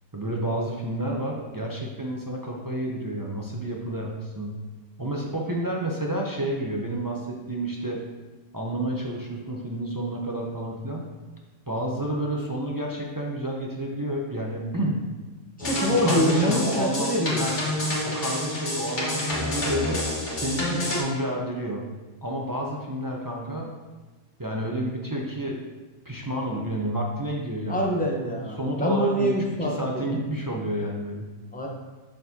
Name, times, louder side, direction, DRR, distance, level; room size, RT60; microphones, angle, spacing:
voice 1, 0.1-4.5 5.0-8.0 8.5-11.1 11.7-15.0 15.9-17.5 18.0-20.0 20.4-21.8 22.2-23.7 24.4-25.6 26.0-27.9 28.5-31.3, right 1 dB, 30° right, -1 dB, 0.4 m, -30 dB
sound 1, 15.6-21.0, left 1 dB, 40° left, 1.7 m, -28 dB
voice 2, 15.7-17.4 27.7-30.0 31.5-31.7, equal, 10° left, -1 dB, 0.7 m, -25 dB
6.8 x 6.0 x 2.8 m, 1.2 s
omnidirectional pair, 1.3 m